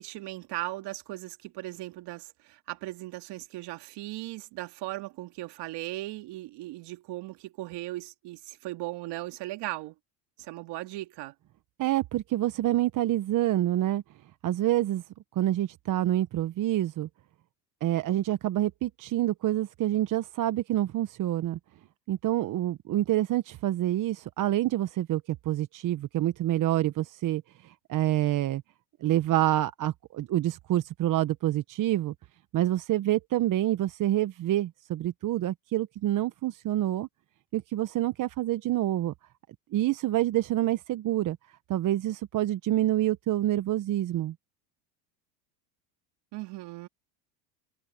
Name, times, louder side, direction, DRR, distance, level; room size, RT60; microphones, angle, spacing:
voice 1, 0.0-9.9 10.4-11.3 46.3-46.9, right 18 dB, 55° right, 2.6 m, -38 dB
voice 2, 11.8-14.0 14.4-15.0 15.3-17.1 17.8-21.6 22.1-28.6 29.0-32.1 32.5-37.1 37.5-39.1 39.7-41.4 41.7-44.3, right 14 dB, 40° right, 1.1 m, -27 dB
supercardioid pair, 105°, 47 cm